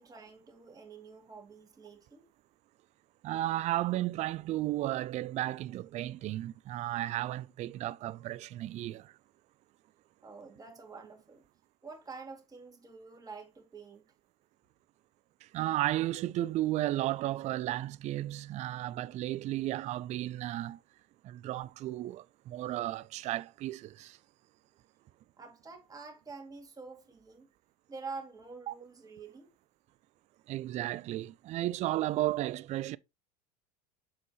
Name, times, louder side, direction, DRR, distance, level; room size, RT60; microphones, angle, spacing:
voice 1, 0.0-2.2 10.2-11.4 11.8-14.0 25.4-27.5 27.9-29.5, right 4 dB, 15° right, 2.3 m, -47 dB
voice 2, 3.2-9.1 15.4-20.8 21.2-24.2 28.7-28.8 30.5-33.0, right 15 dB, 35° right, 0.4 m, -34 dB
7.3 x 5.7 x 2.9 m
figure-of-eight pair, 75°, 20 cm